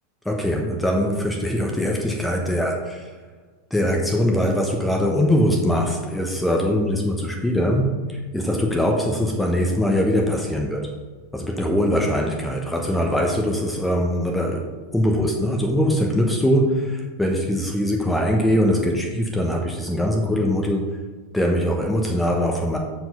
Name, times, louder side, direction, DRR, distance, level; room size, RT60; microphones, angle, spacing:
voice 1, 0.2-3.1 3.7-10.9 11.3-14.6 14.9-20.9 21.3-22.8, equal, 5° left, 1 dB, 1.0 m, -22 dB
7.5 x 4.6 x 5.6 m, 1.4 s
figure-of-eight pair, 90°, 0 cm